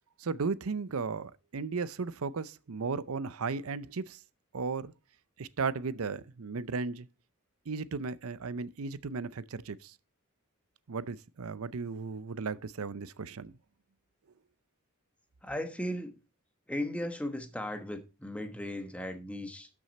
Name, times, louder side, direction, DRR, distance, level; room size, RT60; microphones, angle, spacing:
voice 1, 0.2-4.2 4.5-4.9 5.4-7.1 7.7-9.9 10.9-13.5, right 4 dB, 80° right, 0.6 m, -35 dB
voice 2, 15.4-16.2 16.7-19.7, left 1 dB, 5° left, 1.1 m, -36 dB
12.5 x 6.3 x 4.2 m
head